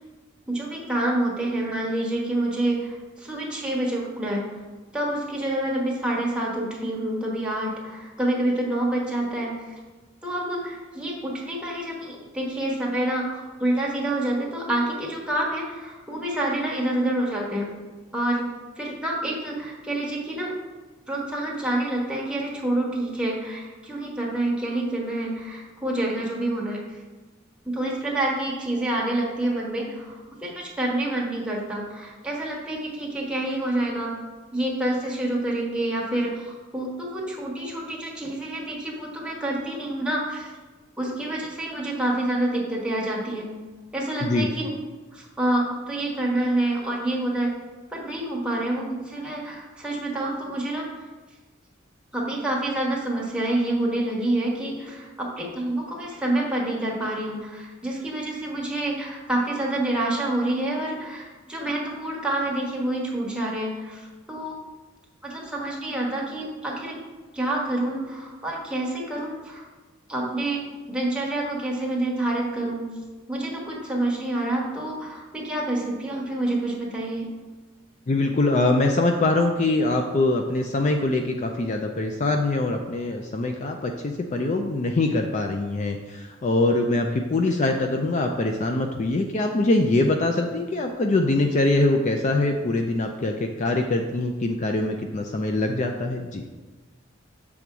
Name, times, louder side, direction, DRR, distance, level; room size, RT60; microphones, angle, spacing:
voice 1, 0.5-4.5 4.9-9.7 10.2-17.7 18.1-18.4 18.8-20.5 21.1-26.8 27.6-34.1 34.5-40.5 41.0-43.5 43.9-44.8 45.1-47.5 47.9-50.9 52.1-64.5 65.2-67.0 67.3-69.6 70.1-70.6 70.9-72.9 73.3-77.3, right 1 dB, 5° right, -3 dB, 1.4 m, -27 dB
voice 2, 78.1-96.4, left 2 dB, 35° left, 4 dB, 0.4 m, -23 dB
6.8 x 3.6 x 6.0 m, 1.3 s
head